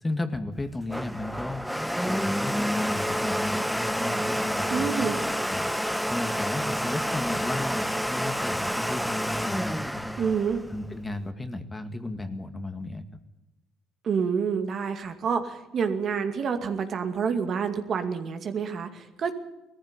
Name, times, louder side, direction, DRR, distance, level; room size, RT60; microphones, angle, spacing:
voice 1, 0.0-1.6 2.0-5.1 5.5-10.2 10.7-13.0, left 2 dB, 15° left, 8 dB, 2.0 m, -34 dB
Domestic sounds home sounds, 0.5-11.2, equal, ahead, 0.9 m, -29 dB
voice 2, 4.7-5.2 10.2-10.6 14.0-19.3, right 6 dB, 55° right, 7 dB, 2.3 m, -28 dB
18.5 x 14.5 x 9.9 m, 1.0 s
supercardioid pair, 75°, 0 cm